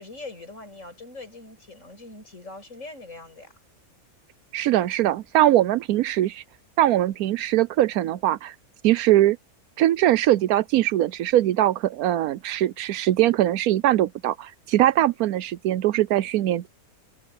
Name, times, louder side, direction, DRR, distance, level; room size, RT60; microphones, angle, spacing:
voice 1, 0.0-3.5, left 2 dB, 55° left, 6.9 m, -42 dB
voice 2, 4.5-6.4 6.8-8.5 8.8-9.4 9.8-16.7, right 13 dB, 80° right, 1.1 m, -21 dB
omnidirectional pair, 1.5 m